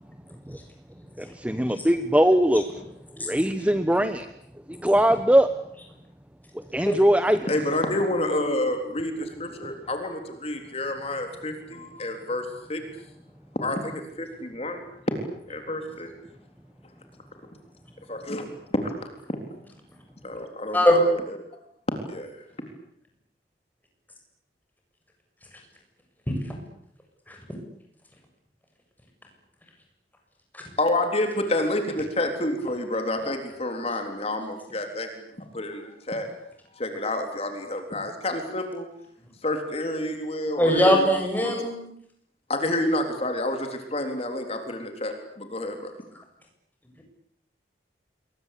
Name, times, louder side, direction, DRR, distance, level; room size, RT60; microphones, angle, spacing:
voice 1, 1.2-4.3 4.7-5.5 6.5-7.5, right 1 dB, 10° right, 10 dB, 1.1 m, -21 dB
voice 2, 7.5-13.1 13.5-15.1 15.5-16.1 18.1-18.9 20.2-21.4 22.1-22.4 30.8-35.3 35.5-36.3 36.7-38.9 39.4-41.1 41.4-41.6 42.5-45.9, left 1 dB, 35° left, 5 dB, 3.8 m, -29 dB
voice 3, 40.6-41.9, equal, 10° left, 2 dB, 7.5 m, -21 dB
28.5 x 22.5 x 8.5 m, 0.71 s
head